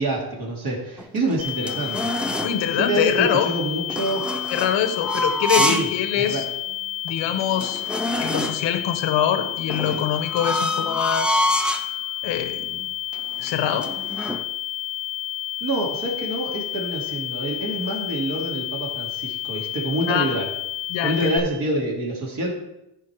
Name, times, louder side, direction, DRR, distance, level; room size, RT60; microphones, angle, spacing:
voice 1, 0.0-2.0 2.8-4.2 5.6-5.9 6.1-6.4 15.6-20.5 21.0-22.5, right 1 dB, 50° right, -3 dB, 2.7 m, -26 dB
sound 1, 1.0-2.6 3.9-6.0 6.4-6.5 7.1-7.2 7.4-8.7 9.7-11.9 12.6-12.9 13.1-14.4, left 1 dB, ahead, 0.5 m, -26 dB
sound 2, 1.4-21.4, left 13 dB, 80° right, 4.0 m, -31 dB
voice 2, 2.4-3.5 4.5-6.4 7.0-7.8 8.2-11.6 12.2-12.6 13.4-13.9 20.1-20.3 20.9-21.3, left 9 dB, 90° left, 9 dB, 1.2 m, -24 dB
15.0 x 5.3 x 4.7 m, 0.89 s
cardioid pair, 135°, 43 cm